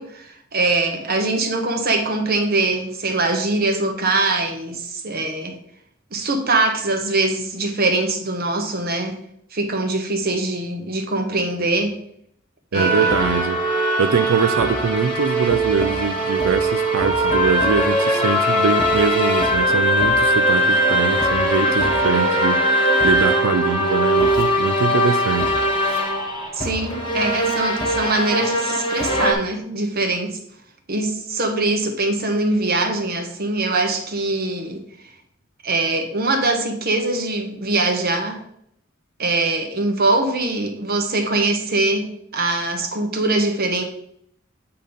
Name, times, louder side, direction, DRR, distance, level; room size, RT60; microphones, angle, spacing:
voice 1, 0.0-5.6 6.1-9.2 9.5-12.0 12.7-13.1 26.5-30.4 30.9-34.8 35.6-38.4 39.2-43.8, right 2 dB, 50° right, 5 dB, 1.2 m, -22 dB
sound 1, 12.7-29.3, right 1 dB, 25° left, 1.3 m, -20 dB
voice 2, 12.7-13.6 14.0-25.6, right 5 dB, 80° right, 9 dB, 0.4 m, -23 dB
sound 2, 22.9-29.1, equal, 20° right, 1.6 m, -38 dB
8.5 x 3.9 x 5.3 m, 0.72 s
head